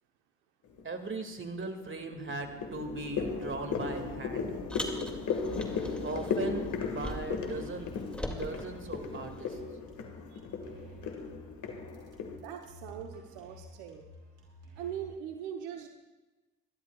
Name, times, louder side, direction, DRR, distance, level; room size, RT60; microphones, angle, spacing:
sound 1, 0.7-1.2 1.6-12.4, left 5 dB, 60° left, 1.9 m, -36 dB
voice 1, 0.8-4.5 6.0-7.9 8.3-9.6, right 3 dB, 35° right, 5 dB, 2.2 m, -38 dB
Car, 4.7-7.5 7.8-9.6, equal, 5° left, 2.3 m, -42 dB
sound 2, 7.1-15.1, right 1 dB, 65° right, 4.1 m, -52 dB
voice 2, 12.4-14.1 14.8-15.9, right 9 dB, 85° right, 4 dB, 1.0 m, -41 dB
26.5 x 12.0 x 2.4 m, 1.1 s
hypercardioid pair, 50°, 34 cm